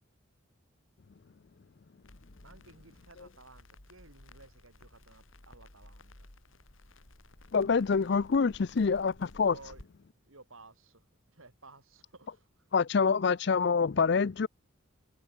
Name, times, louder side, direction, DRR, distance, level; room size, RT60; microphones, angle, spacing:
Crackle, 2.0-9.8, left 2 dB, 75° left, 2.8 m, -55 dB
voice 1, 2.4-6.3 9.5-9.8 10.2-11.0 11.3-12.7, right 3 dB, 85° right, 5.8 m, -55 dB
voice 2, 7.5-9.6 12.7-14.5, left 5 dB, 55° left, 0.5 m, -26 dB
head